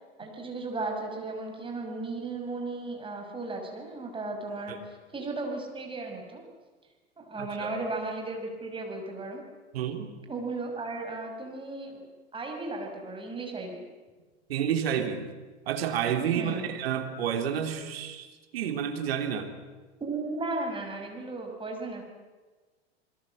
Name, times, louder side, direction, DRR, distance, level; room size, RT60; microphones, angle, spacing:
voice 1, 0.2-6.4 7.2-9.4 10.3-12.0 12.3-13.8 16.3-16.7 20.0-22.0, right 3 dB, 15° right, 2 dB, 6.3 m, -35 dB
voice 2, 7.4-7.7 9.7-10.1 14.5-15.2 15.7-19.5, right 8 dB, 60° right, 6 dB, 3.1 m, -30 dB
28.0 x 21.5 x 7.7 m, 1.3 s
figure-of-eight pair, 90°, 33 cm